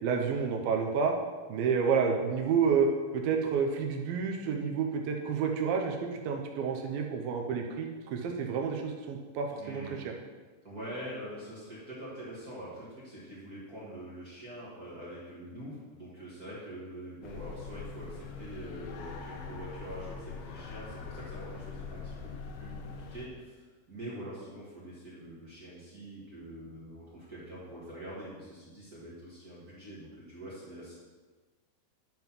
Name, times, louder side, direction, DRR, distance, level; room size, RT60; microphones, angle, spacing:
voice 1, 0.0-1.1 1.5-2.9 3.1-10.0, right 6 dB, 75° right, 2 dB, 2.3 m, -29 dB
voice 2, 9.6-9.9 10.6-22.3 22.6-31.0, right 1 dB, 50° right, -8 dB, 1.1 m, -44 dB
sound 1, 17.2-23.3, left 5 dB, 80° left, 2.6 m, -42 dB
10.5 x 3.7 x 5.9 m, 1.4 s
omnidirectional pair, 4.6 m